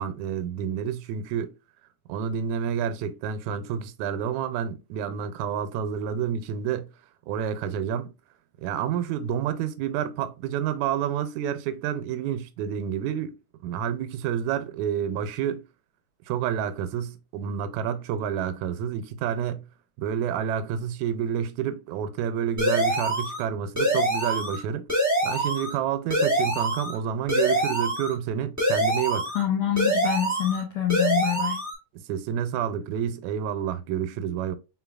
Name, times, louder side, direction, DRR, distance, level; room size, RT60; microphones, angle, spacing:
voice 1, 0.0-1.5 2.1-6.9 7.3-8.1 8.6-13.4 13.6-15.6 16.3-19.7 20.0-24.9 25.2-29.3 31.9-34.6, right 8 dB, 85° right, 1.9 m, -29 dB
sound 1, 22.6-23.4 23.8-24.6 24.9-25.7 26.1-27.0 27.3-28.1 28.6-29.4 29.8-30.6 30.9-31.7, right 1 dB, 10° right, 0.7 m, -25 dB
voice 2, 29.3-31.6, left 11 dB, 80° left, 1.3 m, -26 dB
4.5 x 3.7 x 2.3 m
omnidirectional pair, 3.4 m